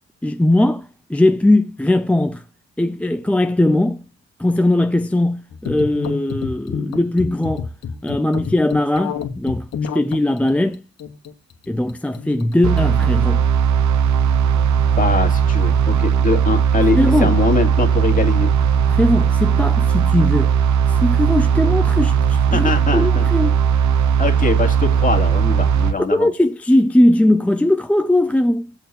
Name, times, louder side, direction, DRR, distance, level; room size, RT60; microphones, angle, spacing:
voice 1, 0.2-2.4 2.8-4.0 4.4-7.7 8.0-9.7 9.9-10.8 11.7-13.4 16.9-17.3 18.9-20.5 20.9-23.6 26.1-28.7, left 1 dB, 5° left, 0.4 m, -19 dB
sound 1, 5.5-13.1, left 6 dB, 60° left, 1.6 m, -29 dB
sound 2, 12.6-25.9, right 7 dB, 70° right, 1.0 m, -17 dB
voice 2, 15.0-18.5 22.5-23.3 24.2-26.3, left 4 dB, 25° left, 2.4 m, -22 dB
7.8 x 4.5 x 7.0 m
cardioid pair, 90°, 30 cm